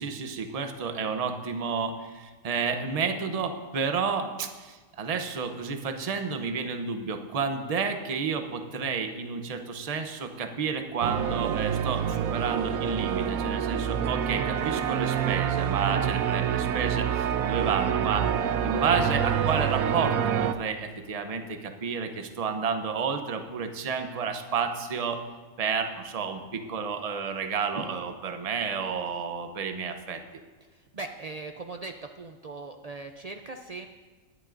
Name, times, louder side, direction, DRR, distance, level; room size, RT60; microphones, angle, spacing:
voice 1, 0.0-18.3 18.6-25.2 25.6-30.2, right 5 dB, 35° right, 6 dB, 0.7 m, -31 dB
sound 1, 11.0-20.5, right 8 dB, 90° right, 1.1 m, -27 dB
voice 2, 30.7-33.9, right 3 dB, 75° right, 5 dB, 0.3 m, -40 dB
19.5 x 11.0 x 2.6 m, 1.3 s
omnidirectional pair, 1.4 m